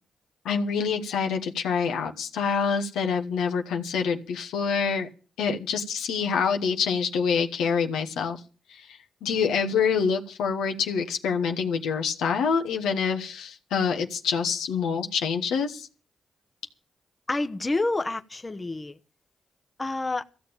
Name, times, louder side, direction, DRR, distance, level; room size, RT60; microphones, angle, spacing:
voice 1, 0.4-5.1 5.4-8.4 8.7-15.9, left 6 dB, 80° left, 1.2 m, -26 dB
voice 2, 17.3-19.0 19.8-20.2, left 2 dB, 30° left, 1.0 m, -28 dB
15.0 x 6.9 x 8.9 m
hypercardioid pair, 40°, 0 cm